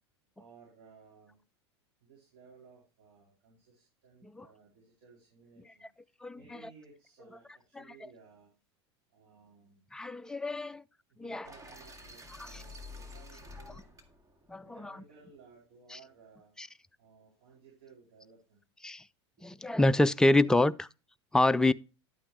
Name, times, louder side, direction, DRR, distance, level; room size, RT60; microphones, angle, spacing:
voice 1, 0.4-1.4 2.0-5.9 6.3-8.5 9.1-9.9 11.1-13.8 14.6-16.5 17.0-18.6, right 5 dB, 60° right, 4.2 m, -58 dB
voice 2, 6.2-6.6 7.8-7.9 9.9-10.8 11.2-11.5 12.4-12.6 14.5-15.0 15.9-16.0 16.6-16.7 18.8-19.0 19.4-20.9 21.3-21.7, left 2 dB, 5° left, 0.4 m, -27 dB
sound 1, 11.4-15.5, left 2 dB, 25° right, 2.0 m, -50 dB
11.0 x 8.8 x 3.1 m
hypercardioid pair, 85°, 15 cm